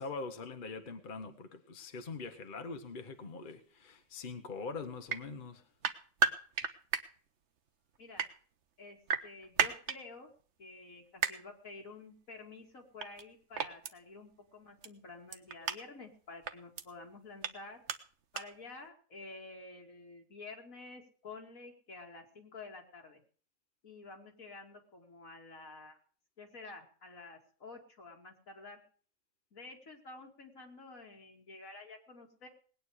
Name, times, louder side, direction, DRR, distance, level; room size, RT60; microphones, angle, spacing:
voice 1, 0.0-5.6, left 4 dB, 40° left, 1.2 m, -43 dB
sound 1, 5.1-5.2 5.8-7.0 8.0-8.3 9.1-10.0 11.2-11.3 13.0-13.2 13.5-13.9 14.8-14.9 15.3-15.8 16.4-16.8 17.4-17.5 17.9-18.0 18.3-18.4, right 6 dB, 60° right, 1.2 m, -32 dB
voice 2, 9.2-10.3 10.6-17.8 18.3-23.2 23.8-26.0 26.4-28.8 29.5-32.5, left 3 dB, 80° left, 2.8 m, -50 dB
19.5 x 9.3 x 4.8 m
omnidirectional pair, 1.4 m